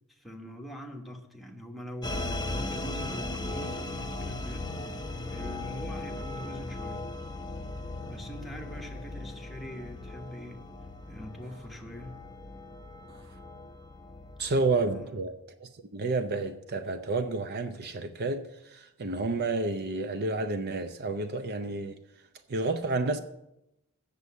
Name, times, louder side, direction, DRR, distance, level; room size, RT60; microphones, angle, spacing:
voice 1, 0.1-4.7 5.3-7.2 8.1-10.6 11.1-12.2 14.8-15.2, equal, ahead, 1.2 m, -43 dB
sound 1, 2.0-15.0, left 2 dB, 20° left, 0.8 m, -38 dB
voice 2, 14.4-15.3 15.6-22.0 22.5-23.2, right 3 dB, 50° right, 0.6 m, -30 dB
8.1 x 6.8 x 8.3 m
head